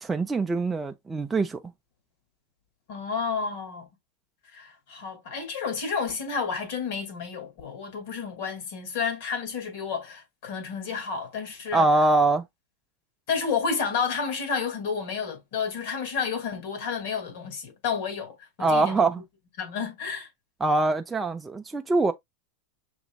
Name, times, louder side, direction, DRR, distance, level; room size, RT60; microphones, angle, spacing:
voice 1, 0.0-1.6 11.7-12.4 18.6-19.2 20.6-22.1, right 2 dB, 10° right, 0.4 m, -23 dB
voice 2, 2.9-3.9 4.5-11.9 13.3-19.1 19.6-20.3, left 6 dB, 60° left, 2.4 m, -31 dB
6.1 x 3.0 x 2.3 m
supercardioid pair, 140°, 0 cm